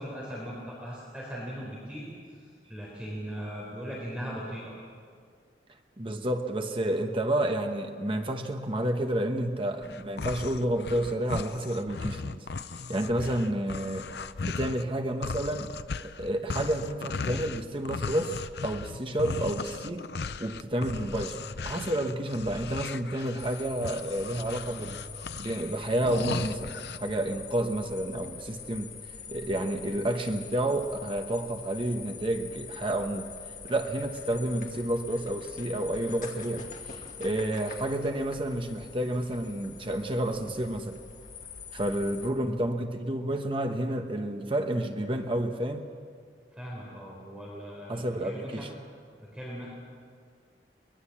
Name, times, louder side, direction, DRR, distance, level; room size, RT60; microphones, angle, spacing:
voice 1, 0.0-2.1 2.7-4.7 46.5-48.6 49.2-49.7, equal, 5° right, -5 dB, 4.3 m, -39 dB
voice 2, 6.0-12.5 12.9-14.1 14.4-15.7 16.0-20.1 20.4-25.0 25.4-28.9 29.3-33.3 33.7-41.0 41.7-45.8 47.9-48.8, right 1 dB, 30° right, 5 dB, 1.1 m, -30 dB
sound 1, 9.8-14.9 15.2-27.0, left 4 dB, 65° left, 0.6 m, -37 dB
sound 2, 23.4-42.3, left 6 dB, 45° left, 2.3 m, -44 dB
23.0 x 20.5 x 7.3 m, 2.1 s
head